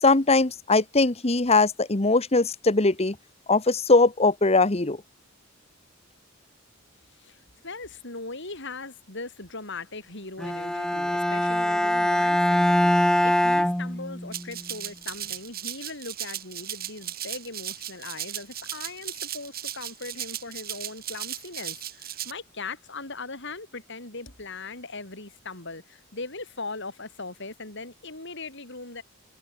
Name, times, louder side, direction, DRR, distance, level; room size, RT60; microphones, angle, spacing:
voice 1, 0.0-3.2 3.5-5.0, left 3 dB, 30° left, 1.2 m, -21 dB
voice 2, 7.2-29.0, left 3 dB, 55° left, 5.8 m, -39 dB
Bowed string instrument, 10.4-14.5, left 1 dB, 5° left, 0.4 m, -23 dB
Rattle (instrument), 14.3-22.3, right 12 dB, 45° right, 5.8 m, -36 dB
head